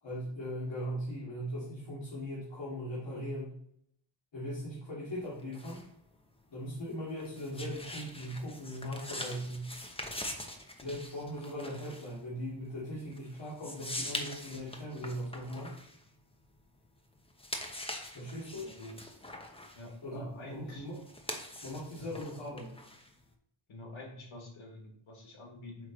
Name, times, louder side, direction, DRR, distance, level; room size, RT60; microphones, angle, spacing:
voice 1, 0.0-3.6 4.3-5.8 6.5-9.7 10.8-15.7 18.1-18.7 20.0-21.0 21.6-22.7, equal, 65° left, -8 dB, 2.8 m, -39 dB
sound 1, 5.1-16.8 17.2-23.3, left 1 dB, 10° left, 0.9 m, -44 dB
voice 2, 18.6-19.0 19.7-20.9 22.0-22.1 23.7-25.9, left 2 dB, 90° left, 1 dB, 1.7 m, -47 dB
9.1 x 3.2 x 4.0 m, 0.71 s
wide cardioid pair, 85°, 47 cm